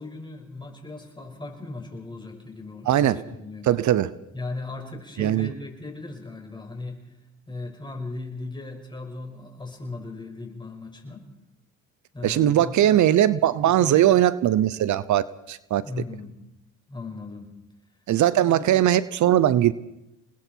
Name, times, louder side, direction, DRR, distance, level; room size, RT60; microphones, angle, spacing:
voice 1, 0.0-3.7 4.3-7.0 7.5-11.2 12.1-13.1 13.6-14.2 15.8-16.4 16.9-17.5 18.4-18.7, left 3 dB, 15° left, 2 dB, 5.9 m, -37 dB
voice 2, 2.9-3.2 3.6-4.1 5.2-5.5 12.2-15.8 18.1-19.7, right 12 dB, 70° right, 17 dB, 0.9 m, -20 dB
28.0 x 21.0 x 4.6 m, 0.87 s
cardioid pair, 90°, 30 cm